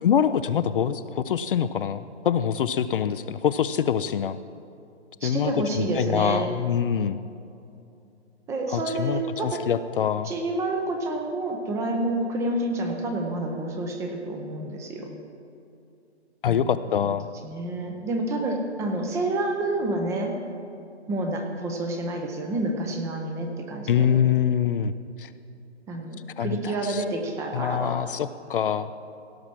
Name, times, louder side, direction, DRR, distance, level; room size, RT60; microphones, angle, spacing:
voice 1, 0.0-4.4 5.2-7.2 8.7-10.3 16.4-17.3 23.9-24.9 25.2-25.3 26.4-27.0 27.5-28.9, left 8 dB, 50° left, 13 dB, 0.4 m, -25 dB
voice 2, 5.2-6.5 8.5-9.7 10.2-15.1 16.5-16.6 17.4-20.4 21.1-24.1 25.9-28.0, right 2 dB, 10° right, 3 dB, 0.5 m, -29 dB
17.0 x 6.0 x 5.9 m, 2.6 s
figure-of-eight pair, 135°, 34 cm